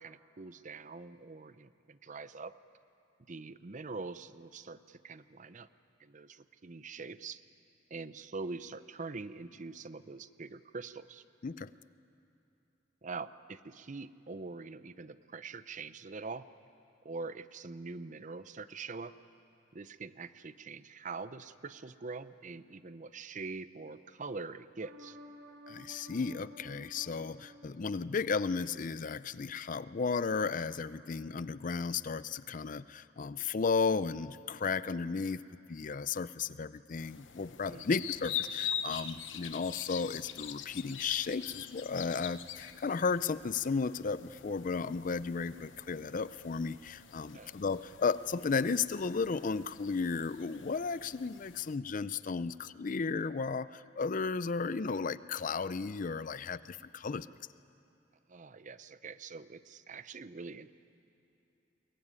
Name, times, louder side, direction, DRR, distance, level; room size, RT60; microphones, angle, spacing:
voice 1, 0.0-2.5 3.3-5.7 6.0-7.4 7.9-11.2 13.0-16.5 17.0-19.1 19.7-25.2 37.7-38.0 47.3-47.6 58.3-60.7, right 4 dB, 40° right, 14 dB, 0.6 m, -44 dB
sound 1, 24.8-29.0 29.4-29.5, equal, 60° right, 1.7 m, -54 dB
voice 2, 25.7-35.4 35.7-57.3, left 5 dB, 45° left, 16 dB, 0.5 m, -34 dB
sound 2, 37.0-51.8, left 9 dB, 85° left, 1.0 m, -44 dB
22.5 x 20.5 x 9.7 m, 2.9 s
head